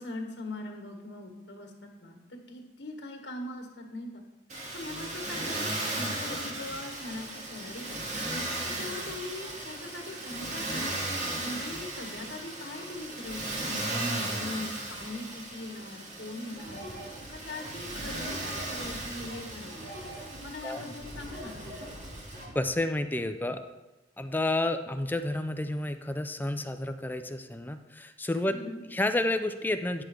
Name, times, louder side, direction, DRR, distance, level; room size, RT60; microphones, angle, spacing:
voice 1, 0.0-4.2 4.7-8.3 8.6-11.1 11.4-16.9 17.3-19.9 20.4-22.0 28.5-28.8, left 2 dB, 70° left, 2 dB, 1.8 m, -41 dB
Motor vehicle (road), 4.5-22.4, right 1 dB, 40° right, 2.0 m, -36 dB
sound 1, 16.5-22.5, equal, 60° right, 2.1 m, -43 dB
voice 2, 22.5-23.6 24.2-30.0, left 1 dB, 10° left, 8 dB, 0.4 m, -30 dB
10.5 x 6.4 x 4.8 m, 1.1 s
head